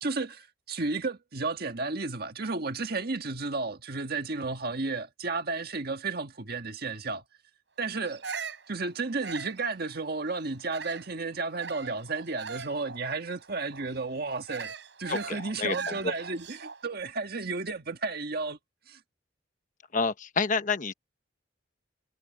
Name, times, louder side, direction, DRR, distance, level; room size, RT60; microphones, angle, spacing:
voice 1, 0.0-7.2 7.8-8.2 8.7-14.7 15.0-18.6 18.9-19.0, right 3 dB, 55° right, 1.7 m, -33 dB
Bird vocalization bird call bird song, 8.0-11.1 11.6-16.9, right 5 dB, 75° right, 4.9 m, -41 dB
voice 2, 15.1-16.1 19.9-20.9, left 4 dB, 45° left, 1.1 m, -29 dB
head